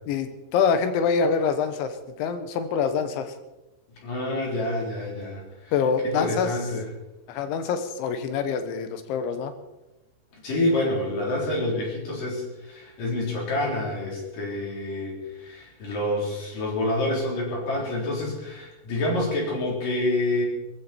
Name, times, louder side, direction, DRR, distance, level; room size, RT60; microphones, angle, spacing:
voice 1, 0.1-3.3 5.7-6.5 7.3-9.5, left 6 dB, 85° left, 9 dB, 3.7 m, -25 dB
voice 2, 4.0-5.7 6.0-6.9 10.4-20.4, left 1 dB, 50° left, -1 dB, 5.3 m, -27 dB
20.0 x 15.0 x 4.4 m, 0.99 s
omnidirectional pair, 5.2 m